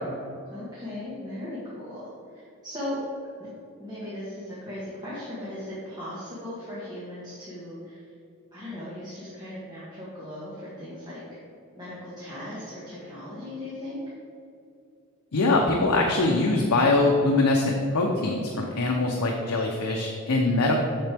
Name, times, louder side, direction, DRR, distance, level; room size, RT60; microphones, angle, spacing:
voice 1, 0.5-2.0 2.3-3.0 3.4-3.5 3.8-8.1 8.5-11.2 11.8-14.0, left 1 dB, 20° right, -10 dB, 1.5 m, -38 dB
voice 2, 15.3-20.8, left 2 dB, 80° left, 0 dB, 0.7 m, -23 dB
7.5 x 6.8 x 3.4 m, 2.5 s
head